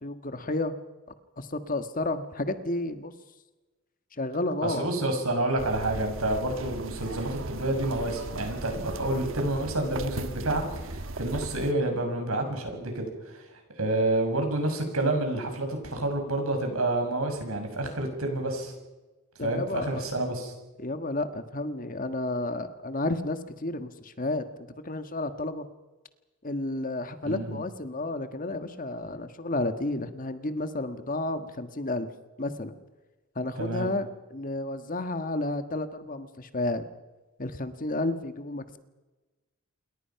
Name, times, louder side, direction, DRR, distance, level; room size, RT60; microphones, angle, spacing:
voice 1, 0.0-0.8 1.4-3.1 4.1-4.9 19.4-20.0 20.8-24.4 24.8-25.7 26.4-32.1 32.4-32.7 33.3-36.8 37.4-38.8, left 2 dB, 40° left, 9 dB, 1.6 m, -31 dB
voice 2, 4.6-13.5 13.8-18.7 19.4-20.5 27.2-27.6 33.6-33.9, right 2 dB, 80° right, 4 dB, 6.6 m, -29 dB
sound 1, 5.6-11.7, right 2 dB, 65° right, 1.3 m, -37 dB
28.0 x 22.5 x 5.9 m, 1.1 s
head